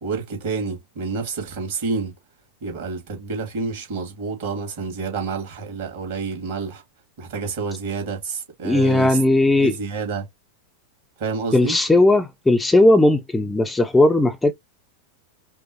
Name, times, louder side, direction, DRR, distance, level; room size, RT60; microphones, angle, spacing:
voice 1, 0.0-2.1 2.6-6.8 7.2-10.3 11.2-11.8, right 4 dB, 50° right, 2.3 m, -29 dB
voice 2, 8.6-9.7 11.5-14.5, left 2 dB, 10° left, 0.5 m, -17 dB
5.2 x 2.0 x 2.9 m
figure-of-eight pair, 90°, 0 cm